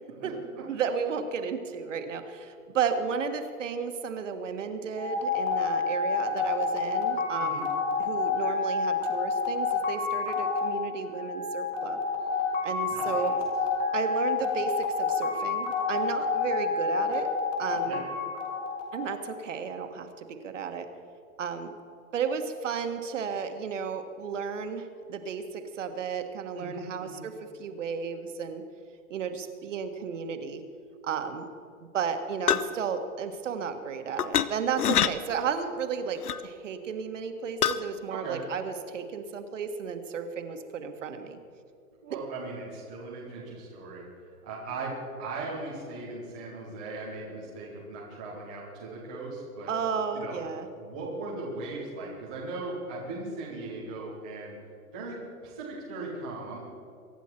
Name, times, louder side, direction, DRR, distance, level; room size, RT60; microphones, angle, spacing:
voice 1, 0.7-7.7 8.0-12.0 12.6-13.3 13.9-17.3 17.6-18.0 18.9-20.9 21.4-21.7 22.1-28.6 29.1-30.6 31.0-31.5 31.9-41.4 49.7-50.7, right 6 dB, 50° right, 7 dB, 1.6 m, -33 dB
sound 1, 5.0-19.4, left 4 dB, 15° left, 1.8 m, -29 dB
voice 2, 12.8-13.3 17.7-18.0 26.5-27.2 38.1-38.4 42.0-44.1 44.4-44.9 45.2-49.7 50.1-50.4 50.8-54.5 54.9-56.6, right 3 dB, 5° right, -9 dB, 0.5 m, -38 dB
sound 2, 32.5-32.8 34.2-34.5 34.8-35.1 36.2-36.4 37.6-37.8, left 9 dB, 75° left, 0.9 m, -24 dB
23.5 x 10.5 x 4.4 m, 2.6 s
hypercardioid pair, 165°, 46 cm